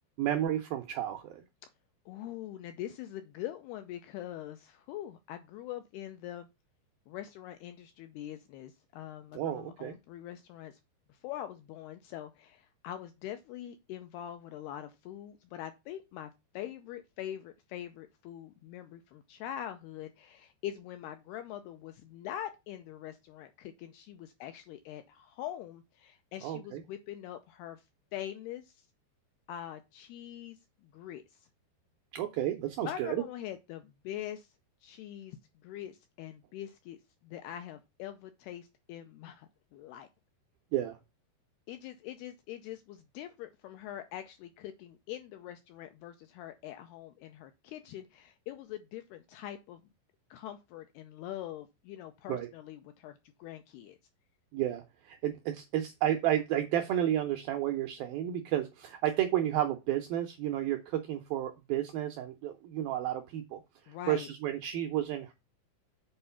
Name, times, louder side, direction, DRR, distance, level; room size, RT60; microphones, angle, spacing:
voice 1, 0.2-1.4 9.3-10.0 26.4-26.8 32.1-33.2 40.7-41.0 52.3-52.5 54.5-63.6 63.9-65.3, right 12 dB, 80° right, 2.1 m, -32 dB
voice 2, 2.1-6.5 7.1-10.8 11.1-27.8 28.1-28.8 29.5-31.5 32.8-34.5 34.8-35.4 35.6-37.0 37.2-40.1 41.7-49.8 50.3-54.0 63.9-64.3, left 12 dB, 85° left, 2.3 m, -43 dB
7.6 x 4.5 x 5.6 m
omnidirectional pair, 5.2 m